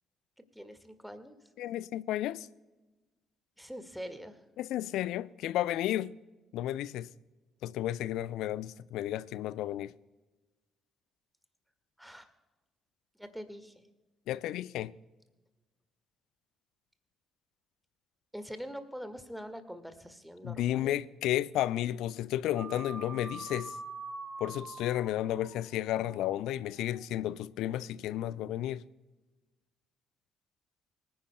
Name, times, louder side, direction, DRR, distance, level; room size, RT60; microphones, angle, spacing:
voice 1, 0.5-1.3 3.6-4.4 12.0-12.3 13.2-13.8 18.3-20.9, equal, ahead, 1.7 m, -44 dB
voice 2, 1.6-2.5 4.6-6.1 6.5-7.1 7.6-9.9 14.3-14.9 20.4-23.8 24.4-28.8, left 13 dB, 60° left, 0.3 m, -32 dB
sound 1, 22.5-27.1, right 3 dB, 25° right, 1.5 m, -45 dB
24.5 x 10.0 x 2.2 m
figure-of-eight pair, 45°, 0 cm